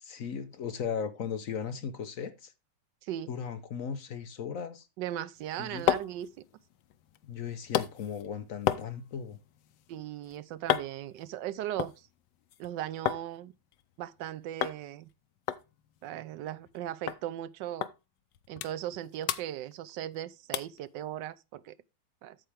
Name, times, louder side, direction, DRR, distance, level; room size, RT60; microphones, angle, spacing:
voice 1, 0.0-2.5 3.3-4.9 5.6-5.9 7.2-9.4, left 7 dB, 60° left, 1.0 m, -37 dB
voice 2, 5.0-6.3 9.9-12.1 12.6-13.5 14.0-15.1 16.0-17.9 18.5-21.7 22.2-22.4, right 12 dB, 85° right, 1.3 m, -38 dB
sound 1, 5.4-13.3 13.6-14.2 14.6-14.8 15.1-15.2 15.5-16.8 17.1-17.2 17.8-17.9 18.3-19.0 19.2-20.2 20.5-20.8 21.3-21.4, left 11 dB, 80° left, 1.3 m, -34 dB
8.8 x 7.3 x 3.4 m
omnidirectional pair, 1.9 m